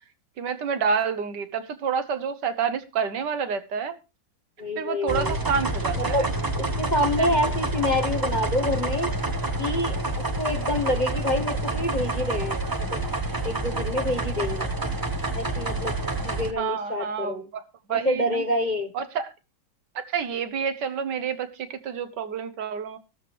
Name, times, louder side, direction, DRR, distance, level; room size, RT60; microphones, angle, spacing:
voice 1, 0.4-4.0 4.8-6.3 7.2-7.4 16.6-17.6 17.9-18.4 18.9-19.3 19.9-23.0, right 6 dB, 70° right, 1.6 m, -28 dB
voice 2, 4.6-5.4 6.0-6.3 6.6-9.1 9.6-10.0 10.4-13.0 13.4-14.7 15.4-16.0 16.2-17.4 17.9-18.9, left 1 dB, 30° left, 1.1 m, -27 dB
sound 1, 5.1-16.5, right 2 dB, 20° right, 0.6 m, -28 dB
14.0 x 13.0 x 3.0 m
omnidirectional pair, 2.0 m